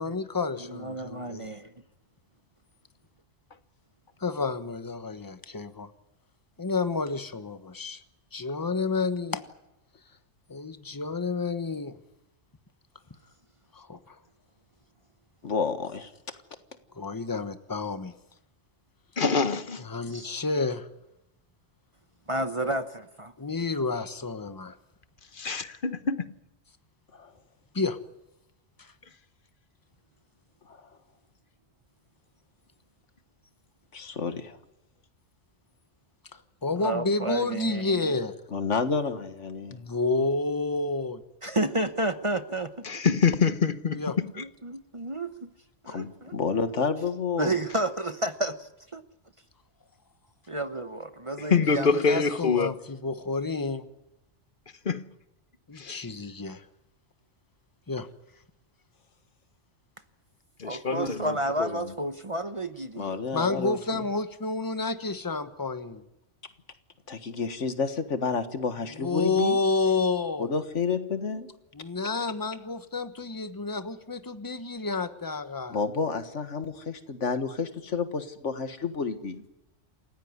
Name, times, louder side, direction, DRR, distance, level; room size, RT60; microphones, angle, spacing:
voice 1, 0.0-1.5 4.2-5.9 6.6-8.0 8.3-9.4 10.5-12.0 13.7-14.2 16.9-18.1 19.8-20.9 23.4-24.8 27.7-28.0 28.8-28.9 36.3-38.4 39.7-41.2 43.9-44.2 51.7-53.9 55.7-56.6 57.9-58.1 63.3-66.0 68.9-70.5 71.7-75.8, left 3 dB, 20° left, 1.1 m, -30 dB
voice 2, 0.6-1.7 20.1-20.3 22.3-23.3 36.8-38.0 41.4-42.7 44.4-45.5 45.8-46.3 47.4-49.0 50.5-52.0 60.6-63.1, right 1 dB, 30° right, 0.9 m, -31 dB
voice 3, 15.4-16.1 27.1-27.3 30.7-30.8 33.9-34.6 38.5-39.8 45.9-47.6 63.0-63.8 67.1-69.6 70.4-71.5 75.7-79.4, left 5 dB, 90° left, 1.9 m, -30 dB
voice 4, 19.2-19.8 25.3-26.4 42.8-44.4 51.5-52.7 54.8-55.1 55.8-56.1 60.6-61.7, left 5 dB, 50° left, 1.2 m, -26 dB
28.0 x 16.0 x 9.6 m
omnidirectional pair, 1.2 m